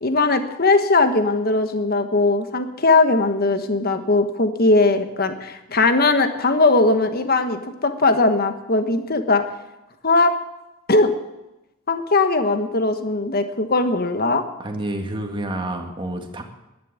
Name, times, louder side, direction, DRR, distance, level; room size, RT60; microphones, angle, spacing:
voice 1, 0.0-9.4 10.0-10.3 10.9-11.1 11.9-14.4, left 3 dB, 45° left, 8 dB, 1.3 m, -19 dB
voice 2, 14.6-16.4, right 1 dB, 25° right, 3 dB, 1.9 m, -29 dB
12.0 x 11.0 x 8.4 m, 0.97 s
head